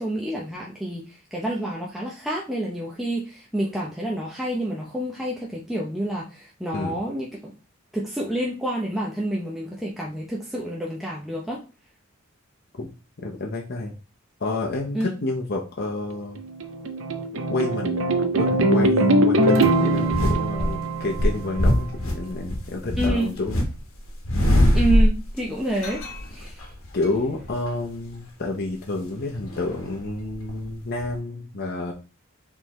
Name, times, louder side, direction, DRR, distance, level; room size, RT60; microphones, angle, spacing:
voice 1, 0.0-7.5 7.9-11.6 14.9-15.1 23.0-23.3 24.7-26.0 26.3-26.6, right 1 dB, ahead, -4 dB, 0.6 m, -28 dB
voice 2, 13.2-13.9 14.4-16.4 17.5-23.6 26.9-31.9, left 2 dB, 50° left, 0 dB, 0.8 m, -29 dB
sound 1, 16.1-21.7, right 1 dB, 65° right, 0.6 m, -22 dB
sound 2, 20.1-20.7 21.2-23.7 24.0-25.4 25.8-27.1 27.4-27.7 29.4-30.7 31.0-31.1, equal, 85° left, 1.1 m, -22 dB
4.5 x 3.6 x 3.1 m, 0.32 s
head